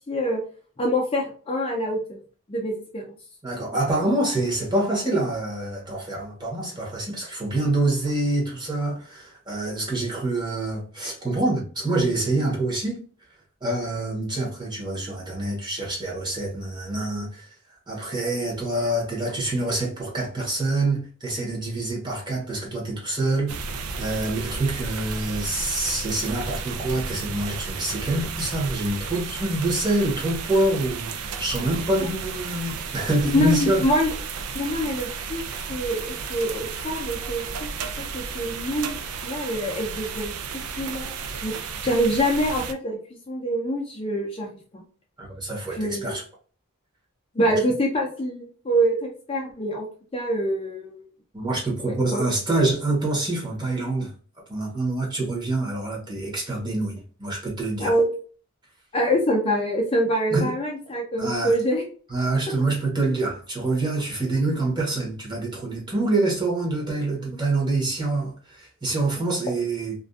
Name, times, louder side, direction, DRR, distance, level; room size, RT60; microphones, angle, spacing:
voice 1, 0.1-0.4 0.8-2.2 2.5-3.0 33.3-34.1 34.5-35.4 35.7-37.4 38.0-39.0 39.2-40.3 40.8-41.5 41.8-43.0 43.3-44.5 44.7-44.8 45.7-46.1 47.4-49.9 50.1-51.0 51.8-52.2 57.8-58.1 58.9-61.8, equal, 25° left, 0.4 m, -25 dB
voice 2, 3.4-13.0 13.6-17.5 17.9-23.5 23.8-33.9 45.2-46.2 51.3-54.1 54.5-57.9 60.3-60.5 61.2-61.5 62.1-69.9, right 2 dB, 20° right, 0.9 m, -26 dB
sound 1, 23.5-42.7, right 5 dB, 85° right, 0.4 m, -33 dB
2.5 x 2.2 x 2.3 m
head